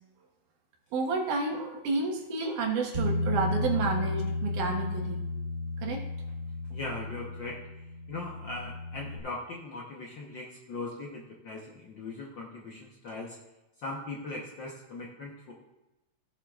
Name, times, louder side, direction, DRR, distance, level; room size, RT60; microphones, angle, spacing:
voice 1, 0.9-5.2 5.8-6.0, right 3 dB, 80° right, 1 dB, 3.0 m, -30 dB
Bass guitar, 2.9-9.2, left 2 dB, 45° right, 1.0 m, -33 dB
voice 2, 6.7-7.6 8.1-13.4 13.8-15.5, left 2 dB, 80° left, -2 dB, 1.0 m, -39 dB
16.5 x 7.4 x 2.4 m, 1.0 s
omnidirectional pair, 3.6 m